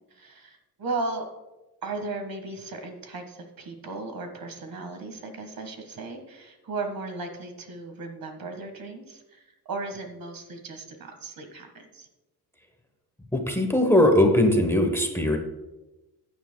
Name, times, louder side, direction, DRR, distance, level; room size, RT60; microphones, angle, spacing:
voice 1, 0.1-1.2 1.8-12.1, right 3 dB, 60° right, 5 dB, 1.6 m, -36 dB
voice 2, 13.3-15.4, left 1 dB, 5° left, 3 dB, 0.9 m, -20 dB
15.5 x 9.5 x 2.2 m, 1.1 s
wide cardioid pair, 145°, 40 cm